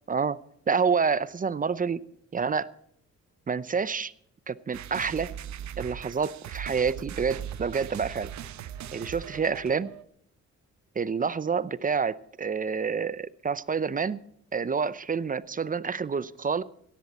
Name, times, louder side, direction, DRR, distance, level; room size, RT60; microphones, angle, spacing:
voice 1, 0.1-0.4 0.7-2.0 2.3-2.7 3.5-4.1 4.5-5.3 5.8-8.3 8.9-9.9 11.0-14.2 14.5-16.6, right 5 dB, 30° right, 17 dB, 0.6 m, -28 dB
sound 1, 4.7-10.0, right 10 dB, 70° right, 0.9 m, -39 dB
17.5 x 13.0 x 4.2 m, 0.70 s
cardioid pair, 90°, 30 cm